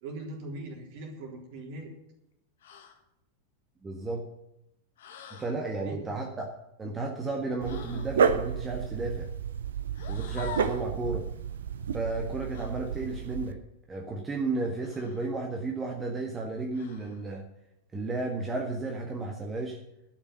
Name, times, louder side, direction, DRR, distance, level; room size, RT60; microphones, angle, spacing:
voice 1, 0.0-1.9 5.8-6.0, right 2 dB, 50° right, 0 dB, 3.6 m, -40 dB
sound 1, 2.6-3.0 5.0-5.6 7.6-8.2 9.9-10.9 12.5-12.7 14.8-15.3 16.7-17.2, left 6 dB, 60° left, 1.6 m, -44 dB
voice 2, 3.8-4.2 5.4-6.5 6.8-9.3 10.1-11.3 11.9-13.6 13.9-17.4 17.9-19.8, right 3 dB, 15° right, 1 dB, 1.6 m, -33 dB
Dog, 7.6-13.5, right 7 dB, 65° right, 0.8 m, -31 dB
12.0 x 6.2 x 9.2 m, 0.85 s
figure-of-eight pair, 90°, 0 cm